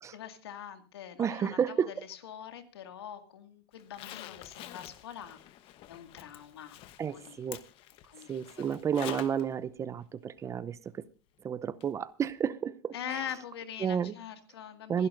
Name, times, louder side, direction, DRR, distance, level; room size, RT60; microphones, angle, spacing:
voice 1, 0.1-5.4 5.9-7.4 8.1-8.7 12.9-15.1, left 9 dB, 85° left, 2.1 m, -43 dB
voice 2, 1.2-1.9 7.0-7.6 8.3-10.8 11.4-13.2 13.8-14.1 14.9-15.1, right 8 dB, 25° right, 0.6 m, -31 dB
Zipper (clothing), 3.8-9.4 9.8-9.9 11.8-11.9 12.3-12.4, left 13 dB, 45° left, 1.1 m, -47 dB
26.5 x 11.0 x 2.6 m
supercardioid pair, 120°, 13 cm